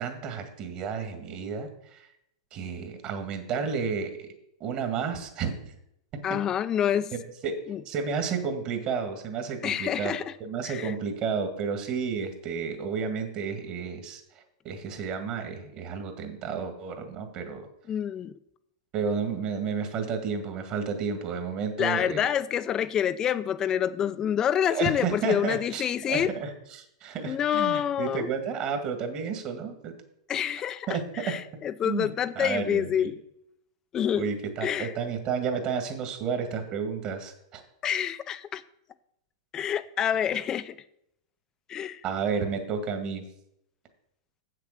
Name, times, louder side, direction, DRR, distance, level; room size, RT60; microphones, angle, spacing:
voice 1, 0.0-2.0 2.5-4.3 4.6-5.5 6.1-6.4 7.1-7.6 7.9-14.2 14.6-17.7 18.9-22.3 24.7-29.9 30.9-31.4 31.8-32.1 32.4-33.1 34.1-37.6 42.0-43.3, right 6 dB, 40° right, 1.9 m, -31 dB
voice 2, 6.2-7.1 7.7-7.8 9.6-10.3 10.6-10.9 17.9-18.3 21.8-26.3 27.2-28.3 30.3-33.2 33.9-34.3 34.6-34.9 37.8-38.6 39.5-40.8 41.7-42.0, left 9 dB, 25° left, 0.5 m, -27 dB
7.7 x 6.8 x 6.6 m
hypercardioid pair, 120°, 2 cm